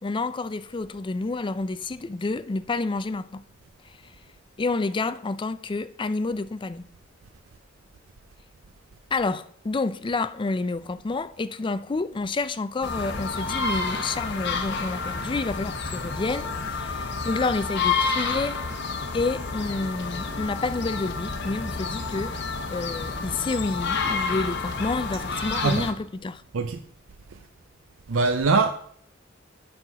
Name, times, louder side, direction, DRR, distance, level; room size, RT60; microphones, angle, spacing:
voice 1, 0.0-3.4 4.6-6.8 9.1-18.6 19.1-26.4, left 3 dB, 25° left, 0.4 m, -29 dB
sound 1, 12.8-25.9, left 4 dB, 60° left, 1.1 m, -29 dB
voice 2, 28.1-28.7, right 4 dB, 85° right, 0.6 m, -22 dB
7.8 x 5.7 x 6.0 m
head